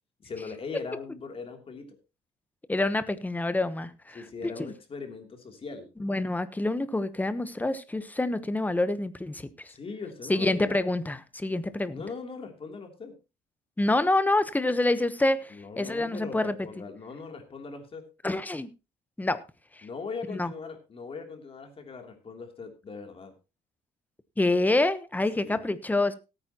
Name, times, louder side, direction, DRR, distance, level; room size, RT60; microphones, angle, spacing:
voice 1, 0.2-2.0 4.1-5.9 9.7-10.8 11.9-13.1 15.5-18.1 19.8-23.3 25.4-25.6, left 4 dB, 35° left, 3.0 m, -40 dB
voice 2, 2.7-4.2 4.6-4.7 6.0-9.7 10.3-12.0 13.8-16.5 18.2-18.7 19.2-19.4 19.8-19.9 20.3-20.5 24.4-26.1, left 2 dB, 10° left, 1.0 m, -27 dB
17.5 x 9.2 x 2.9 m
cardioid pair, 110°, 17 cm